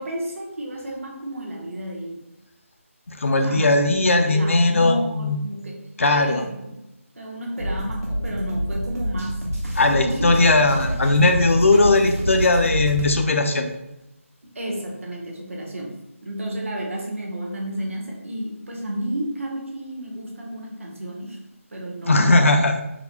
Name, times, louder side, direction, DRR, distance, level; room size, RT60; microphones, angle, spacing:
voice 1, 0.0-2.2 3.4-4.0 4.3-6.9 7.1-9.5 9.9-10.6 14.5-21.4 21.7-22.5, right 1 dB, 60° right, 0 dB, 0.9 m, -32 dB
voice 2, 3.1-5.4 6.0-6.4 9.8-13.7 22.0-22.8, left 2 dB, 60° left, 5 dB, 0.4 m, -18 dB
sound 1, 7.6-13.2, equal, 85° right, 1.2 m, -27 dB
3.9 x 2.1 x 2.9 m, 0.88 s
figure-of-eight pair, 170°, 8 cm